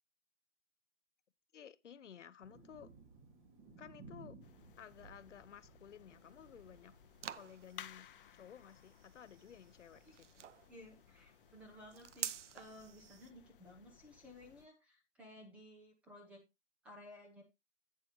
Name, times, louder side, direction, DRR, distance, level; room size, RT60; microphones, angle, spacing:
voice 1, 1.5-2.9 3.8-4.4 4.8-6.9 7.3-8.1 8.3-10.2, left 8 dB, 85° left, 0.9 m, -55 dB
Thunder, 2.4-7.4, right 3 dB, 30° right, 2.4 m, -58 dB
sound 1, 4.4-14.7, left 10 dB, 50° left, 0.6 m, -60 dB
sound 2, 6.1-13.3, right 9 dB, 90° right, 0.6 m, -49 dB
voice 2, 10.7-16.4 16.8-17.4, left 1 dB, 5° right, 0.5 m, -56 dB
8.3 x 8.0 x 3.0 m
hypercardioid pair, 155°, 35 cm